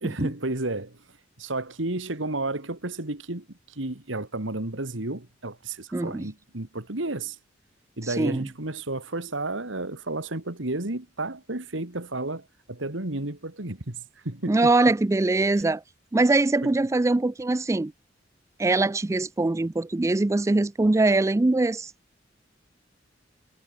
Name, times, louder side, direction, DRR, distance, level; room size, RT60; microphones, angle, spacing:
voice 1, 0.0-1.0 1.4-7.4 8.0-14.7 16.6-16.8, right 2 dB, 80° right, 2.5 m, -32 dB
voice 2, 5.9-6.3 8.0-8.5 14.5-15.8 16.1-17.9 18.6-21.9, right 2 dB, 15° right, 0.4 m, -22 dB
head